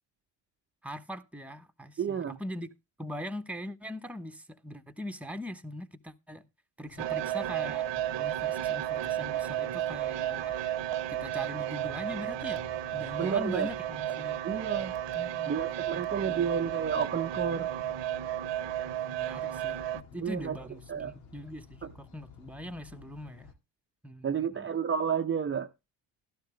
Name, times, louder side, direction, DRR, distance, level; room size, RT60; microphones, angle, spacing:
voice 1, 0.8-2.7 3.0-6.5 6.8-7.9 8.2-10.6 11.1-14.4 15.1-15.6 15.9-16.6 19.1-23.5 24.0-24.8, left 1 dB, 5° right, 1.1 m, -41 dB
voice 2, 2.0-2.4 13.2-13.7 14.4-14.9 15.5-17.7 20.2-20.6 20.9-21.1 21.8-21.9 24.2-25.7, right 7 dB, 25° right, 0.7 m, -31 dB
sound 1, 6.8-23.5, left 6 dB, 70° left, 2.0 m, -52 dB
sound 2, 7.0-20.0, right 12 dB, 60° right, 0.9 m, -33 dB
12.5 x 11.5 x 3.2 m
supercardioid pair, 65°, 49 cm